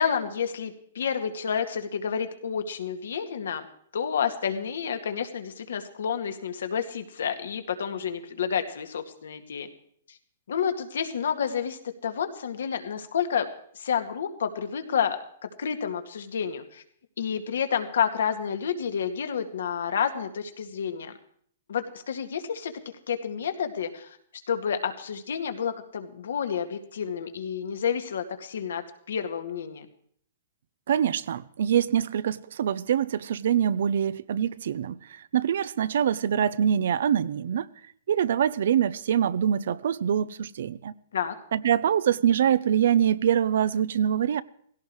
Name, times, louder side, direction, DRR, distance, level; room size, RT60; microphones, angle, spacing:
voice 1, 0.0-3.7 3.9-9.7 10.1-10.2 10.5-13.5 13.7-15.2 15.6-16.8 17.2-21.2 21.7-22.7 23.1-24.2 24.5-29.9 41.1-41.3, left 7 dB, 75° left, 2.0 m, -30 dB
voice 2, 30.9-37.7 38.1-40.9 41.5-44.4, right 9 dB, 65° right, 0.7 m, -24 dB
18.0 x 16.5 x 4.8 m
hypercardioid pair, 150°, 0 cm